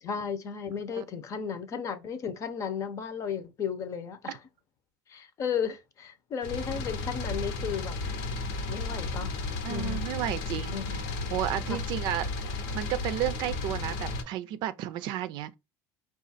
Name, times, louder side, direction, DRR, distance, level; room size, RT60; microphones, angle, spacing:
voice 1, 0.0-4.4 5.1-8.0 8.7-9.4 9.7-10.1 10.7-11.0 11.7-11.8, left 7 dB, 40° left, 0.7 m, -34 dB
sound 1, 6.4-14.2, left 3 dB, 80° left, 1.0 m, -33 dB
voice 2, 9.6-10.8 11.3-12.3 12.7-15.5, right 12 dB, 65° right, 0.5 m, -32 dB
5.0 x 2.4 x 4.0 m
cardioid pair, 135°, 8 cm